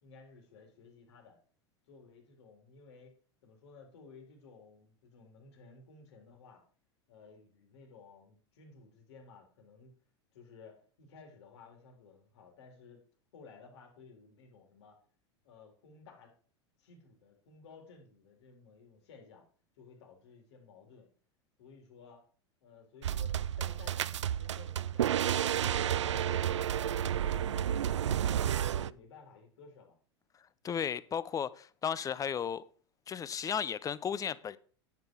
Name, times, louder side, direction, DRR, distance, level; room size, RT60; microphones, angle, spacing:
voice 1, 0.0-1.4 1.9-3.2 3.4-6.6 7.1-10.0 10.3-13.1 13.3-15.0 15.4-16.3 16.8-19.4 19.7-21.1 21.6-22.2 22.6-25.5 25.8-26.5 26.9-30.0, left 4 dB, 70° left, 3.6 m, -56 dB
sound 1, 23.0-28.9, right 10 dB, 85° right, 0.4 m, -31 dB
voice 2, 30.6-32.6 33.1-34.6, left 7 dB, 25° left, 0.7 m, -34 dB
10.5 x 8.2 x 4.6 m
hypercardioid pair, 95°, 15 cm